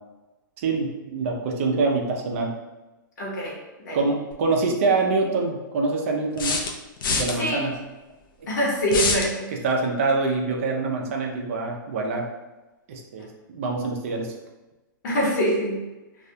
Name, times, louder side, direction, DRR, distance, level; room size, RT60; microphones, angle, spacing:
voice 1, 0.6-2.6 3.9-6.6 7.1-7.8 9.6-12.3 12.9-14.3, right 3 dB, 40° right, 1 dB, 0.4 m, -25 dB
voice 2, 3.2-3.6 3.8-4.0 7.4-7.7 8.5-9.5 15.0-15.9, equal, 60° left, -5 dB, 0.8 m, -24 dB
sound 1, 4.3-4.4 6.4-7.3 8.9-9.3, left 4 dB, 85° left, 0.5 m, -24 dB
2.4 x 2.1 x 2.7 m, 1.1 s
hypercardioid pair, 170°, 11 cm